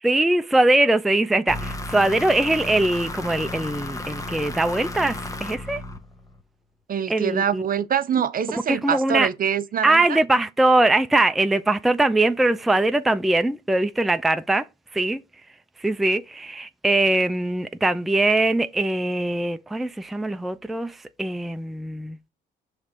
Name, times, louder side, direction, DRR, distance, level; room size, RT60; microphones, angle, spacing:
voice 1, 0.0-5.8 7.1-7.6 8.5-9.3 9.8-15.2 15.8-22.2, right 2 dB, ahead, 0.4 m, -22 dB
sound 1, 1.5-6.4, left 2 dB, 15° left, 0.9 m, -33 dB
voice 2, 6.9-10.2, right 8 dB, 45° right, 0.6 m, -25 dB
5.8 x 3.2 x 5.0 m
cardioid pair, 90°, 20 cm